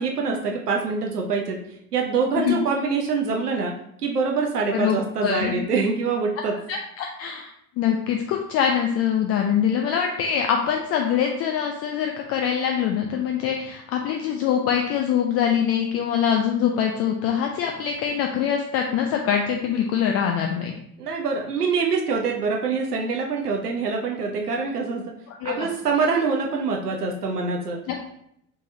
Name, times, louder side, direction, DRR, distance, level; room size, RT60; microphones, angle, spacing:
voice 1, 0.0-1.6 1.9-3.7 4.0-6.5 21.0-25.1 25.4-27.8, right 4 dB, 85° right, 1 dB, 0.6 m, -25 dB
voice 2, 4.7-5.6 6.5-7.5 7.8-20.7 25.4-25.7 27.9-28.1, left 8 dB, 35° left, 2 dB, 0.4 m, -24 dB
4.4 x 3.3 x 2.6 m, 0.73 s
figure-of-eight pair, 60°, 45 cm